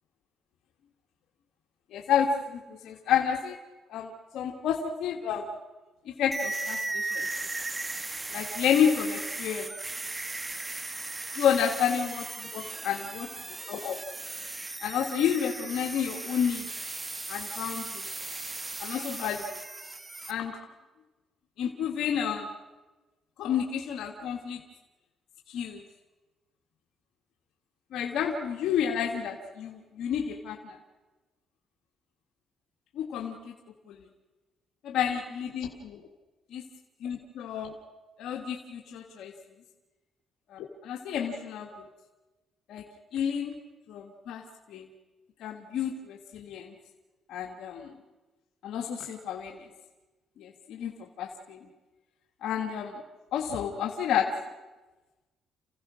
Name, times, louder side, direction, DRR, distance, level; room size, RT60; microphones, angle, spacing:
voice 1, 1.9-3.6 3.9-5.5 6.0-7.3 8.3-9.7 11.4-12.2 12.5-13.1 13.7-14.0 14.8-16.6 17.3-18.0 18.8-19.4 20.3-20.6 21.6-22.5 23.4-24.6 25.5-25.8 27.9-30.6 32.9-33.5 33.9-34.0 34.8-35.7 36.5-36.6 37.0-37.7 38.2-39.3 40.5-41.9 42.7-42.8 43.1-43.5 43.9-44.4 44.7-44.9 45.4-46.7 47.3-47.9 48.6-49.6 50.4-50.9 51.2-51.6 52.4-53.0 53.3-54.3, left 8 dB, 80° left, 1 dB, 1.8 m, -30 dB
sound 1, 6.3-20.3, right 2 dB, 20° right, 1.3 m, -37 dB
29.0 x 15.5 x 6.3 m, 1.2 s
cardioid pair, 90°, 0 cm